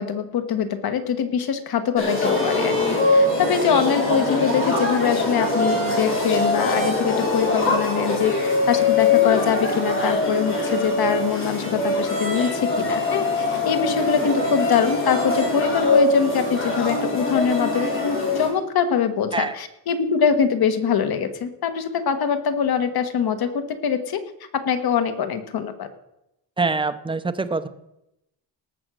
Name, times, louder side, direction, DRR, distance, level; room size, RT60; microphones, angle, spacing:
voice 1, 0.0-24.2 24.5-25.9, left 7 dB, 55° left, 9 dB, 1.5 m, -23 dB
sound 1, 2.0-18.5, left 2 dB, 25° left, 4.3 m, -22 dB
voice 2, 26.6-27.7, right 3 dB, 10° right, 11 dB, 0.5 m, -24 dB
18.5 x 7.2 x 6.3 m, 0.86 s
cardioid pair, 160°, 44 cm